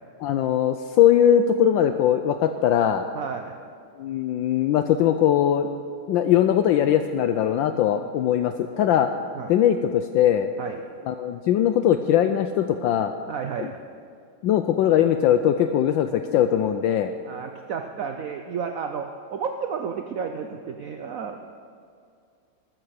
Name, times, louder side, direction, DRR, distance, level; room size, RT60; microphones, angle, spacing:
voice 1, 0.2-3.1 4.0-5.7 6.1-9.1 9.5-10.5 11.1-13.2 13.6-13.7 14.4-17.1, left 10 dB, 75° left, 8 dB, 1.2 m, -20 dB
voice 2, 3.1-3.6 7.7-8.1 9.3-9.5 10.6-10.8 13.3-13.8 17.3-21.4, right 6 dB, 65° right, 5 dB, 0.8 m, -32 dB
14.0 x 12.5 x 6.4 m, 2.3 s
omnidirectional pair, 2.3 m